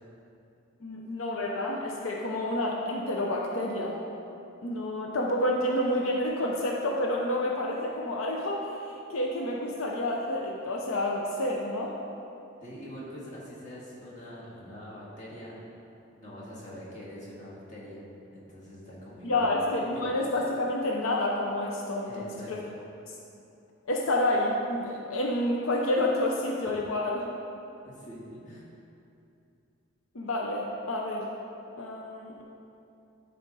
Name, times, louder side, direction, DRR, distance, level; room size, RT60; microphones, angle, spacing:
voice 1, 0.8-4.0 4.6-11.9 19.2-22.6 23.9-27.3 30.1-31.3 31.8-32.4, left 1 dB, 85° left, -1 dB, 0.7 m, -29 dB
voice 2, 12.6-15.6 16.2-18.0 18.3-19.5 19.9-20.1 22.1-22.7 27.8-28.7, equal, 35° left, -7 dB, 1.8 m, -44 dB
11.0 x 4.3 x 4.0 m, 2.7 s
head